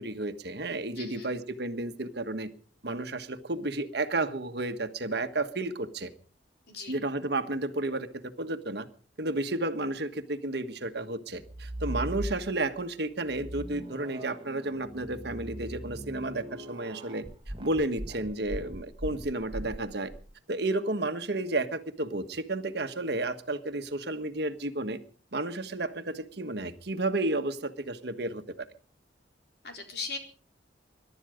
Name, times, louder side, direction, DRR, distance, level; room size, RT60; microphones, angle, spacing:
voice 1, 0.0-2.5 2.8-6.1 6.9-8.9 9.2-17.2 17.6-20.1 20.5-25.0 25.3-28.6, right 2 dB, 60° right, 8 dB, 1.4 m, -32 dB
voice 2, 1.0-1.3 6.7-7.0 29.6-30.2, left 4 dB, 60° left, 3 dB, 4.2 m, -38 dB
sound 1, 11.4-12.8 13.3-20.2, right 1 dB, 25° right, 1.6 m, -39 dB
22.5 x 12.0 x 5.1 m, 0.42 s
head